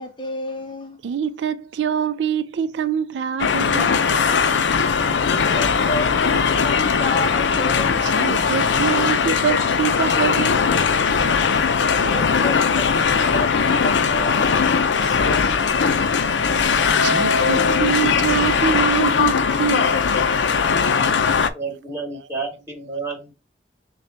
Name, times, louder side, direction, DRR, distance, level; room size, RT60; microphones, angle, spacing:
voice 1, 0.0-1.0 5.2-8.1 11.9-14.7, left 1 dB, 25° left, 0.8 m, -31 dB
voice 2, 1.0-4.0 8.0-10.6 14.9-15.7 17.0-20.0, right 8 dB, 75° right, 0.3 m, -25 dB
sound 1, 3.4-21.5, left 5 dB, 85° left, 0.5 m, -19 dB
voice 3, 21.3-23.3, right 4 dB, 15° right, 2.0 m, -31 dB
6.6 x 2.3 x 2.8 m
head